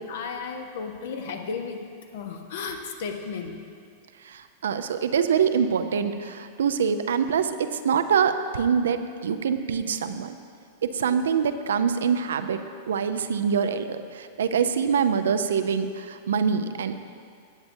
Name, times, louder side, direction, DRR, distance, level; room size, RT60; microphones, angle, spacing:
voice 1, 0.0-1.8 2.1-3.6 11.0-11.2 14.4-14.7, left 5 dB, 60° left, 5 dB, 0.9 m, -34 dB
voice 2, 4.2-10.3 10.8-17.1, right 7 dB, 65° right, 9 dB, 0.5 m, -25 dB
17.5 x 7.9 x 2.7 m, 2.2 s
figure-of-eight pair, 95°, 0 cm